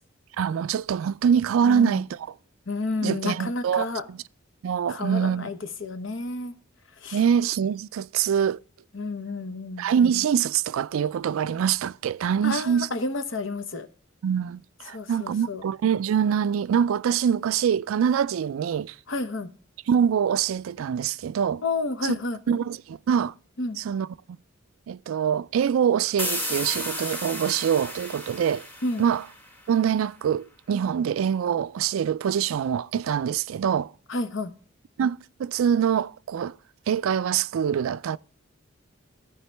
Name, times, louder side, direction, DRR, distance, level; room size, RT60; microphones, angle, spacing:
voice 1, 0.4-2.3 3.0-4.2 4.6-5.5 7.1-8.6 9.8-12.9 14.2-19.0 19.9-21.6 22.0-22.2 22.5-23.3 23.8-24.1 24.9-28.7 29.0-29.2 29.7-33.9 35.0-36.5 36.9-38.2, right 8 dB, 85° right, 0.3 m, -24 dB
voice 2, 1.7-2.0 2.7-4.1 4.9-6.5 7.0-7.2 8.9-9.9 12.4-13.9 14.9-15.6 19.1-19.5 21.6-22.6 23.6-23.8 28.8-29.0 34.1-34.5, left 3 dB, 65° left, 1.0 m, -30 dB
sound 1, 26.2-29.8, left 1 dB, 10° left, 1.1 m, -33 dB
15.0 x 5.0 x 3.4 m
head